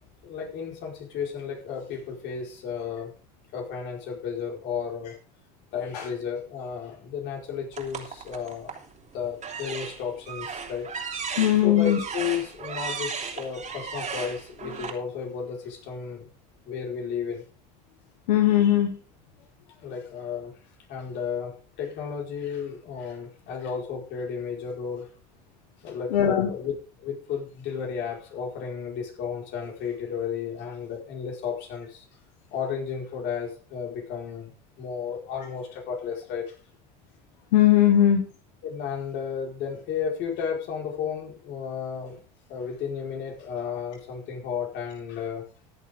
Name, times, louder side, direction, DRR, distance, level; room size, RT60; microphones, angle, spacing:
voice 1, 0.2-3.1 3.5-5.2 5.7-8.7 9.1-10.9 11.6-16.3 16.6-17.4 19.8-20.5 20.9-25.1 25.8-32.1 32.5-34.5 34.8-36.5 37.9-38.0 38.6-42.2 42.5-45.4, left 7 dB, 65° left, 0 dB, 4.9 m, -33 dB
sound 1, 7.7-8.9 9.4-14.9, right 5 dB, 40° right, 3.3 m, -35 dB
voice 2, 11.4-12.0 18.3-18.9 26.1-26.5 37.5-38.2, left 11 dB, 90° left, 5 dB, 1.5 m, -19 dB
15.0 x 10.0 x 3.7 m, 0.38 s
hypercardioid pair, 75°, 20 cm